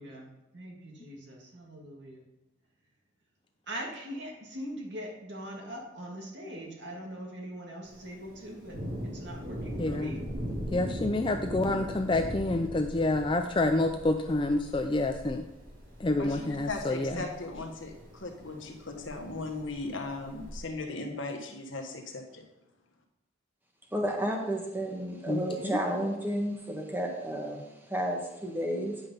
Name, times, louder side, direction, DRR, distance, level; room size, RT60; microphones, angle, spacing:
voice 1, 0.5-2.2 3.7-8.8 9.1-10.2, equal, 55° right, -1 dB, 2.1 m, -41 dB
Thunder, 7.8-20.6, equal, 85° right, 2.9 m, -40 dB
voice 2, 9.8-10.1 10.7-15.4 16.0-17.3 25.3-25.8, left 2 dB, 25° left, 6 dB, 0.4 m, -28 dB
voice 3, 16.2-22.4, left 3 dB, 70° left, 3 dB, 1.4 m, -38 dB
voice 4, 23.9-27.6 27.9-29.0, right 1 dB, 10° right, 0 dB, 1.3 m, -31 dB
9.6 x 5.4 x 5.6 m, 0.96 s
head